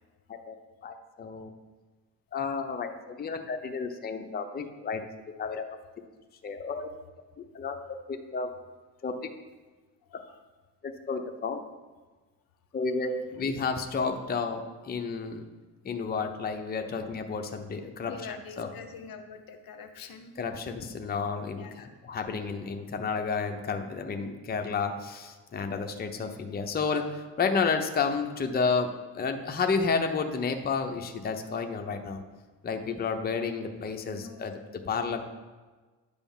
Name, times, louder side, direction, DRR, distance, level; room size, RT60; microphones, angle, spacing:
voice 1, 0.8-1.5 2.3-5.0 5.4-5.6 6.4-6.9 7.5-7.8 8.1-8.5 9.0-9.1 10.8-11.6 12.7-15.4 15.8-18.7 20.4-28.9 29.1-32.2 32.6-34.5 34.9-35.2, left 5 dB, 25° left, 5 dB, 0.7 m, -31 dB
voice 2, 10.1-10.4 13.3-13.4 18.0-20.3 21.5-21.9 34.1-34.4, left 6 dB, 55° left, 7 dB, 0.9 m, -45 dB
10.0 x 3.5 x 7.1 m, 1.3 s
cardioid pair, 120°, 42 cm